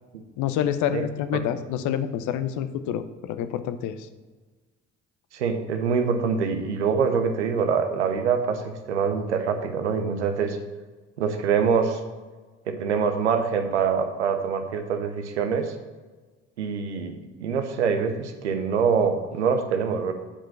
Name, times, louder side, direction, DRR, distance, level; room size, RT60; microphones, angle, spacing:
voice 1, 0.4-4.0, left 10 dB, 60° left, 11 dB, 0.7 m, -27 dB
voice 2, 5.3-10.6 11.2-12.0 12.7-15.7 16.6-20.1, right 6 dB, 90° right, 7 dB, 0.8 m, -25 dB
8.7 x 5.2 x 5.9 m, 1.3 s
hypercardioid pair, 55°, 33 cm